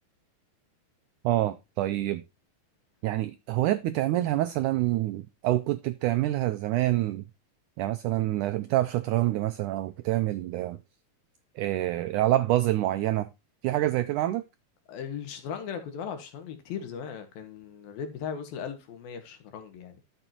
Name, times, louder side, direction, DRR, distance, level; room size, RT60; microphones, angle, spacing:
voice 1, 1.2-2.2 3.0-7.2 7.8-10.8 11.6-13.3 13.6-14.4, right 15 dB, 85° right, 1.8 m, -26 dB
voice 2, 14.9-20.0, left 7 dB, 75° left, 3.4 m, -38 dB
12.5 x 7.1 x 2.9 m
omnidirectional pair, 4.2 m